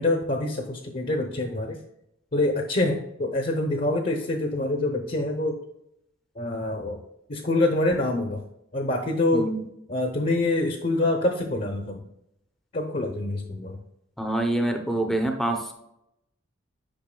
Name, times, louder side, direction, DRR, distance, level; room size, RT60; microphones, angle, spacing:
voice 1, 0.0-1.8 2.3-5.6 6.4-7.0 7.3-8.4 8.7-9.5 9.9-12.0 12.7-13.8, left 2 dB, 40° left, 3 dB, 0.7 m, -25 dB
voice 2, 9.3-9.6 14.2-15.7, right 1 dB, ahead, 4 dB, 0.6 m, -26 dB
8.7 x 5.6 x 2.2 m, 0.81 s
head